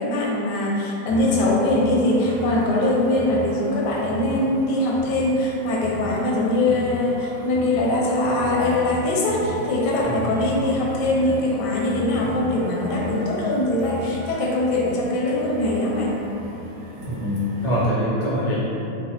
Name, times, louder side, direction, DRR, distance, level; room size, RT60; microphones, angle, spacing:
voice 1, 0.0-16.1, left 1 dB, 90° left, -3 dB, 1.2 m, -22 dB
sound 1, 1.1-17.9, left 1 dB, 90° right, 1.2 m, -36 dB
voice 2, 17.0-18.9, equal, 65° left, -8 dB, 0.3 m, -24 dB
3.2 x 2.1 x 2.8 m, 2.8 s
omnidirectional pair, 1.7 m